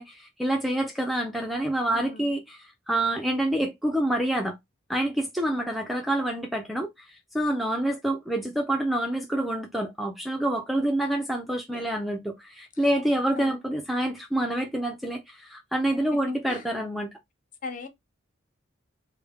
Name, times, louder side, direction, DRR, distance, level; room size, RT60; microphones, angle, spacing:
voice 1, 0.0-4.5 4.9-6.9 7.3-17.1, right 1 dB, ahead, 0.3 m, -27 dB
voice 2, 1.9-2.4 11.7-11.9 13.3-13.6 16.5-16.6 17.6-17.9, left 4 dB, 40° left, 0.6 m, -38 dB
3.4 x 2.0 x 3.4 m
head